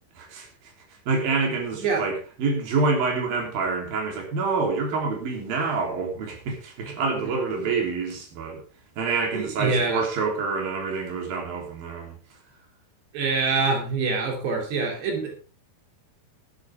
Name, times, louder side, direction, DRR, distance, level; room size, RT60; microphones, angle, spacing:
voice 1, 0.2-0.5 1.1-8.6 9.0-12.2, right 4 dB, 60° right, 1 dB, 5.1 m, -27 dB
voice 2, 9.3-10.0 13.1-15.4, right 4 dB, 85° right, 1 dB, 5.1 m, -25 dB
13.5 x 13.5 x 3.6 m, 0.34 s
omnidirectional pair, 4.7 m